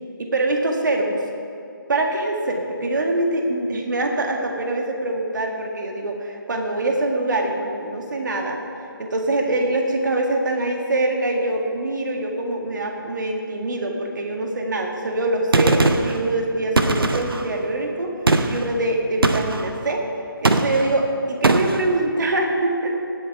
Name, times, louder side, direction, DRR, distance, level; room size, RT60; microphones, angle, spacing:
voice 1, 0.2-1.2 1.9-8.6 9.0-18.1 18.5-20.0 20.4-23.0, right 2 dB, 55° right, 2 dB, 1.9 m, -24 dB
Gunshot gunfire, 15.5-16.2 16.8-17.5 18.3-18.7 19.2-19.7 20.4-20.9 21.4-21.8, right 2 dB, 75° right, 1.0 m, -19 dB
18.0 x 7.9 x 4.8 m, 2.7 s
figure-of-eight pair, 160°, 12 cm